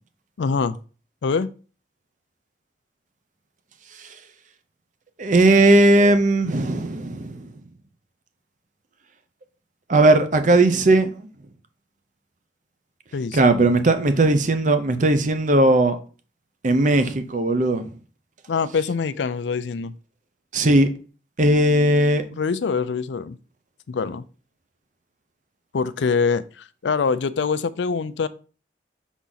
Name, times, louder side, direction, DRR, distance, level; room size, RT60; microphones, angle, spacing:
voice 1, 0.4-0.8 1.2-1.5 13.1-13.4 18.5-19.9 22.3-23.4 23.9-24.2 25.7-28.3, left 5 dB, 80° left, 0.4 m, -24 dB
voice 2, 5.2-7.4 9.9-11.3 13.3-16.0 16.6-17.8 20.5-20.9 21.4-22.3, right 2 dB, 45° right, 0.7 m, -17 dB
6.0 x 4.1 x 3.9 m
head